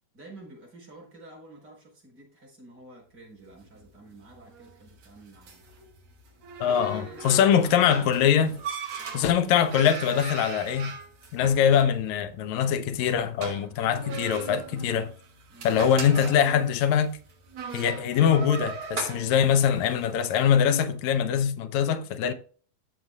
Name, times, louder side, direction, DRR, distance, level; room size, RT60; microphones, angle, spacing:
voice 1, 0.1-5.6 6.6-8.1 9.0-9.2 15.5-15.7, right 2 dB, 30° right, 5.0 m, -49 dB
sound 1, 3.4-20.7, right 5 dB, 55° right, 3.7 m, -40 dB
voice 2, 6.6-8.6 9.1-10.9 11.3-15.1 15.6-17.2 17.7-22.3, left 8 dB, 70° left, 2.1 m, -23 dB
14.0 x 6.7 x 2.4 m
omnidirectional pair, 3.6 m